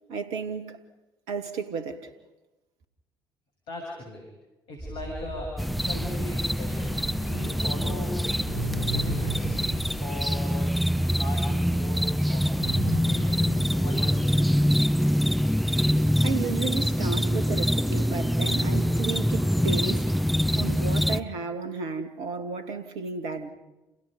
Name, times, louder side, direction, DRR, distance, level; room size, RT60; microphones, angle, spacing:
voice 1, 0.1-0.8 1.3-2.1 16.2-20.1 20.5-23.5, right 4 dB, 60° right, 2.2 m, -33 dB
voice 2, 3.7-4.3 4.7-5.6 5.8-6.9 7.3-8.2 8.6-10.7 11.2-12.6 13.0-14.3, left 1 dB, 55° left, 7.1 m, -39 dB
sound 1, 4.8-10.1, right 1 dB, 15° right, 2.9 m, -38 dB
sound 2, 5.6-21.2, equal, ahead, 0.8 m, -25 dB
sound 3, 6.7-11.0 11.4-11.5 12.6-14.2, right 1 dB, 90° right, 2.3 m, -36 dB
29.5 x 29.5 x 5.4 m
figure-of-eight pair, 55°, 11 cm